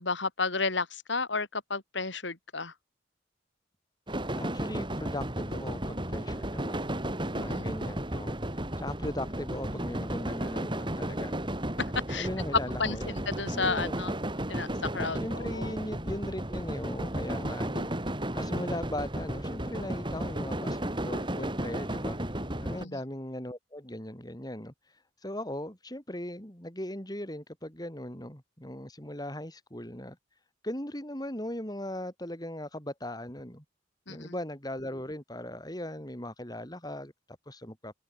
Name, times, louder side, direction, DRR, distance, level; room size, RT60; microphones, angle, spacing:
voice 1, 0.0-2.7 7.5-7.7 12.1-12.3 12.8-14.1 14.5-14.7 14.9-15.7 22.8-23.0 34.1-34.3, left 4 dB, 75° left, 4.0 m, -32 dB
sound 1, 4.1-22.8, right 1 dB, 25° right, 6.1 m, -34 dB
voice 2, 4.4-7.0 7.3-11.4 12.1-13.2 13.5-14.0 15.1-17.9 18.3-22.2 22.6-33.6 34.1-37.1 37.5-37.9, left 1 dB, 20° left, 4.6 m, -39 dB
open air
head